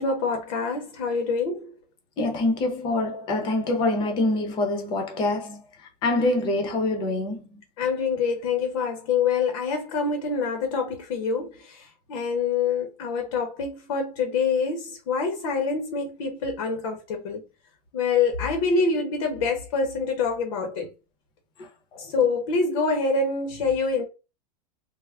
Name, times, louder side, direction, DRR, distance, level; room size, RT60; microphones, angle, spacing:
voice 1, 0.0-1.7 7.8-17.4 17.9-20.9 22.0-24.0, left 4 dB, 55° left, 0.8 m, -26 dB
voice 2, 2.2-5.6 6.0-7.4 21.9-22.0, left 2 dB, 20° left, 0.7 m, -25 dB
3.4 x 2.0 x 3.4 m
supercardioid pair, 175°, 21 cm